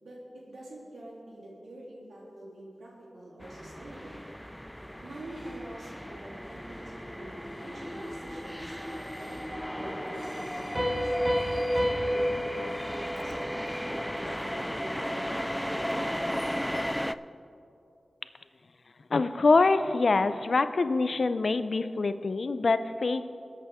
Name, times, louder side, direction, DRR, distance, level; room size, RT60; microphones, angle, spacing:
voice 1, 0.0-4.3 5.0-11.2 11.7-16.7, right 1 dB, 90° right, -5 dB, 3.1 m, -45 dB
sound 1, 3.4-17.1, equal, 5° left, 0.3 m, -35 dB
Piano, 10.7-14.2, equal, 30° right, 2.3 m, -30 dB
voice 2, 19.1-23.2, left 3 dB, 70° left, 12 dB, 0.5 m, -25 dB
21.5 x 8.3 x 3.6 m, 2.7 s
cardioid pair, 45°, 0 cm